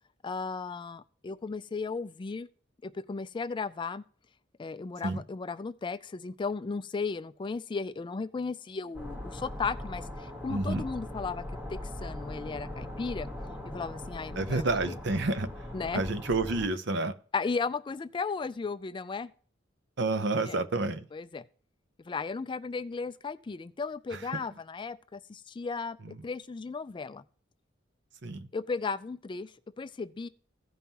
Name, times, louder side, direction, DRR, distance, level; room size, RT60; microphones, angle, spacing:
voice 1, 0.2-2.5 2.8-4.0 4.6-13.3 13.6-15.0 15.7-16.0 17.3-19.3 20.4-20.6 21.1-21.4 22.0-27.2 28.5-30.3, left 4 dB, 25° left, 0.3 m, -35 dB
sound 1, 8.9-16.7, left 1 dB, 10° right, 1.3 m, -40 dB
voice 2, 10.5-10.8 14.4-15.5 15.9-17.1 20.0-21.1 24.1-24.2 26.0-26.1 28.2-28.5, right 2 dB, 65° right, 0.8 m, -29 dB
16.0 x 5.5 x 2.9 m
head